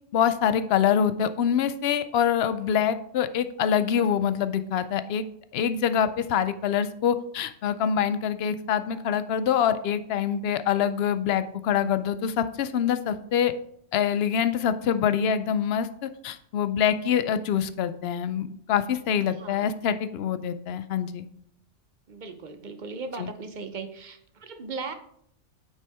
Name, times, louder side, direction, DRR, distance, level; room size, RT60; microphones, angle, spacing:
voice 1, 0.1-5.2 5.5-13.5 13.9-21.3 23.2-23.3, left 8 dB, 65° left, 12 dB, 0.7 m, -25 dB
voice 2, 19.4-19.7 22.1-24.9, right 4 dB, 45° right, 8 dB, 0.8 m, -37 dB
9.4 x 5.6 x 3.5 m, 0.68 s
omnidirectional pair, 1.3 m